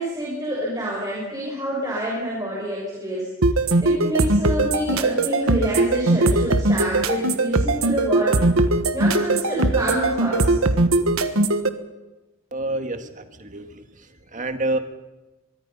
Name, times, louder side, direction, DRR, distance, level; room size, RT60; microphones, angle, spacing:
voice 1, 0.0-3.3 3.8-8.4 8.9-10.5, right 1 dB, 20° right, -4 dB, 6.0 m, -27 dB
sound 1, 3.4-11.7, right 2 dB, 75° right, 1.5 m, -19 dB
voice 2, 12.5-13.9 14.3-14.8, right 2 dB, 35° right, 7 dB, 1.8 m, -27 dB
24.0 x 23.0 x 5.7 m, 1.1 s
head